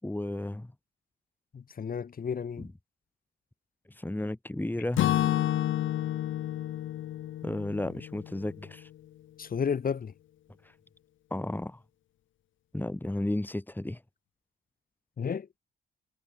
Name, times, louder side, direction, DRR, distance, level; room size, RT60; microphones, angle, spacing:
voice 1, 0.0-0.7 2.6-2.7 4.0-5.1 7.4-8.9 11.3-11.8 12.7-14.0, left 1 dB, 10° left, 7.2 m, -33 dB
voice 2, 1.5-2.7 9.4-10.1 15.2-15.5, left 6 dB, 45° left, 6.8 m, -32 dB
Acoustic guitar / Strum, 5.0-8.9, left 12 dB, 80° left, 4.6 m, -30 dB
cardioid pair, 90°, 20 cm